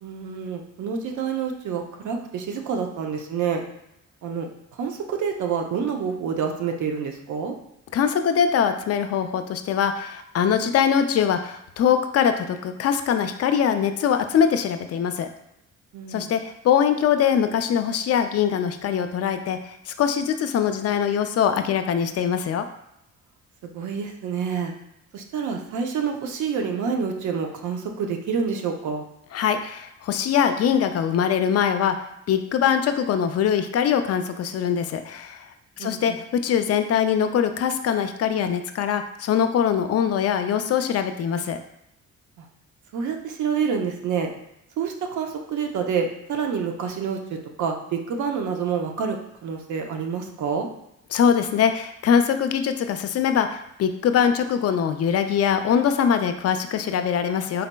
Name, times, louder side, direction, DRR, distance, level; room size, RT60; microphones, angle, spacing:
voice 1, 0.0-3.6 4.2-4.5 4.8-7.5 15.9-16.3 23.6-24.7 25.1-29.0 35.8-36.2 42.4-42.5 42.9-44.3 44.8-50.7, right 6 dB, 75° right, 3 dB, 0.7 m, -28 dB
voice 2, 7.9-15.3 16.1-22.7 29.3-32.0 32.3-35.4 35.8-41.6 51.1-57.7, left 8 dB, 55° left, 8 dB, 0.4 m, -22 dB
4.1 x 4.0 x 2.2 m, 0.82 s
cardioid pair, 90°, 30 cm